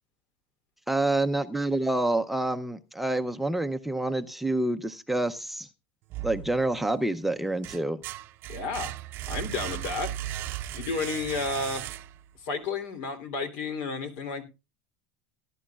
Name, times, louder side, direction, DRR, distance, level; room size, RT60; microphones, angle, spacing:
voice 1, 0.9-5.7 6.2-8.0, right 2 dB, 5° right, 7 dB, 0.6 m, -27 dB
sound 1, 6.1-6.9 7.4-12.4, right 13 dB, 45° right, 0.6 m, -37 dB
voice 2, 8.5-8.9 9.3-10.3 10.7-11.9 12.3-14.4, left 4 dB, 65° left, 9 dB, 3.2 m, -32 dB
18.0 x 11.5 x 2.4 m, 0.27 s
supercardioid pair, 135°, 5 cm